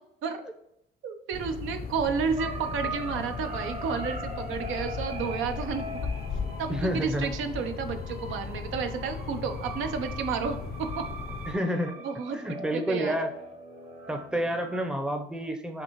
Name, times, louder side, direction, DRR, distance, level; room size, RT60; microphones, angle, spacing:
voice 1, 1.0-5.9 6.6-11.0 12.0-12.4 12.7-13.2, right 6 dB, 80° right, 6 dB, 0.6 m, -31 dB
sound 1, 1.3-11.5, left 5 dB, 50° left, 0.5 m, -37 dB
sound 2, 2.4-14.8, right 2 dB, 35° right, 0.8 m, -41 dB
voice 2, 6.7-7.3 11.5-12.0 12.3-13.3 14.1-15.8, equal, 5° right, 5 dB, 0.6 m, -29 dB
5.8 x 2.7 x 2.9 m, 0.76 s
cardioid pair, 90°, 20 cm